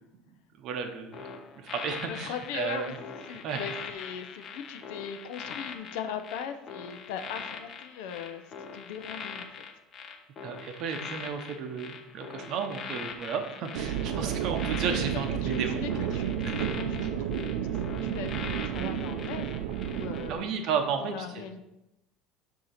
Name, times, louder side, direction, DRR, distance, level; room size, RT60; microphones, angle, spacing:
voice 1, 0.6-2.9 3.4-3.6 10.4-15.9 20.3-21.6, right 6 dB, 45° right, 6 dB, 0.7 m, -33 dB
sound 1, 1.1-20.3 20.6-20.9, left 6 dB, 25° left, 0.6 m, -42 dB
voice 2, 2.0-2.9 3.3-9.5 15.0-19.5 19.9-20.5 21.0-21.6, left 8 dB, 70° left, 8 dB, 0.5 m, -39 dB
sound 2, 13.7-20.4, right 10 dB, 85° right, 0.4 m, -31 dB
6.5 x 2.8 x 5.7 m, 0.93 s
cardioid pair, 170°, 0 cm